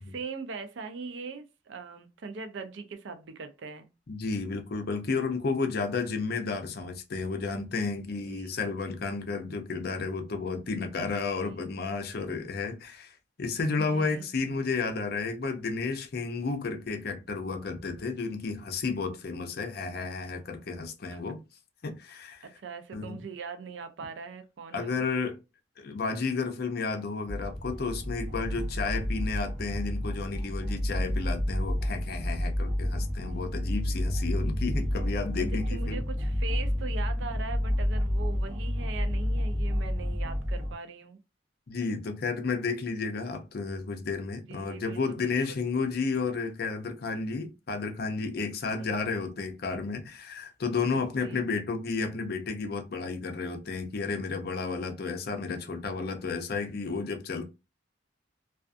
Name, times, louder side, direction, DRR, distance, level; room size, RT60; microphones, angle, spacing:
voice 1, 0.0-3.9 8.2-8.6 11.1-11.6 13.8-14.3 21.0-21.2 22.6-25.1 35.4-41.2 44.5-45.6 48.8-48.9 50.9-51.5, right 4 dB, 70° right, 0.4 m, -41 dB
voice 2, 4.1-21.4 21.8-22.5 22.9-23.2 24.7-25.4 25.8-36.0 41.7-57.5, left 4 dB, 50° left, 0.5 m, -32 dB
sound 1, 27.3-40.7, left 1 dB, 35° right, 0.7 m, -30 dB
2.4 x 2.3 x 2.4 m
head